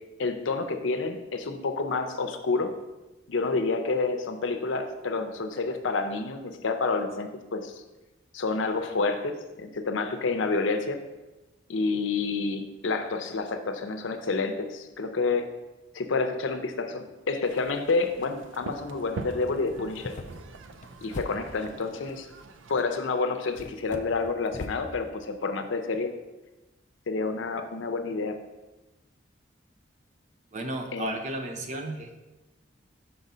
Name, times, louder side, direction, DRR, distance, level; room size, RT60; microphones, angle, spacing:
voice 1, 0.2-2.7 3.3-7.8 8.3-11.0 11.7-15.5 15.9-20.1 21.0-22.3 22.7-26.1 27.1-28.4 30.9-31.2, left 3 dB, 85° left, 7 dB, 0.6 m, -29 dB
sound 1, 17.4-22.9, right 3 dB, 85° right, 0.4 m, -43 dB
sound 2, 19.8-21.8 22.8-22.9 23.5-24.9, left 3 dB, 40° left, 0.4 m, -41 dB
voice 2, 30.5-32.2, right 1 dB, 40° right, 4 dB, 0.6 m, -33 dB
5.6 x 3.9 x 5.5 m, 1.1 s
head